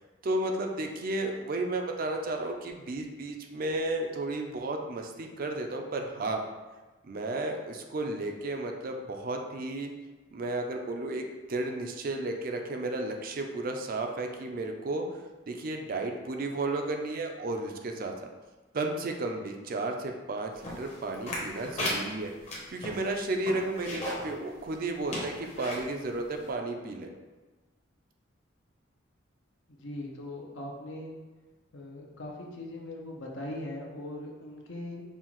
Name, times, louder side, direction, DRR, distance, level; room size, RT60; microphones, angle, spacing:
voice 1, 0.2-6.4 7.0-9.9 10.3-11.2 11.5-15.0 15.5-18.1 18.7-22.3 22.7-27.1, right 2 dB, 45° right, 3 dB, 0.4 m, -33 dB
sound 1, 20.6-24.3 24.7-24.8 25.1-25.8 26.4-26.5, left 1 dB, 35° left, 0.9 m, -35 dB
voice 2, 29.7-31.2 31.7-35.0, left 1 dB, 70° left, -1 dB, 0.7 m, -40 dB
5.5 x 2.4 x 3.0 m, 1.2 s
head